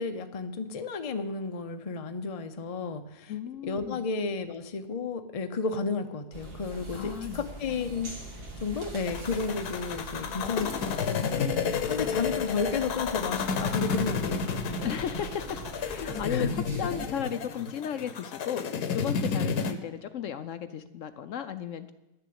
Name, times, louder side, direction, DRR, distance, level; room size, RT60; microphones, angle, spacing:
voice 1, 0.0-3.3 3.6-8.2 8.6-11.4 11.8-14.9 16.1-16.5, left 4 dB, 45° left, 8 dB, 0.4 m, -33 dB
voice 2, 3.3-4.1 6.9-7.5 10.4-11.0 14.8-21.9, left 9 dB, 65° left, 10 dB, 0.8 m, -35 dB
sound 1, 6.3-17.1, right 3 dB, 75° right, 2.5 m, -43 dB
sound 2, 9.1-19.7, left 6 dB, 85° left, 1.4 m, -31 dB
10.5 x 6.9 x 8.5 m, 1.0 s
omnidirectional pair, 1.6 m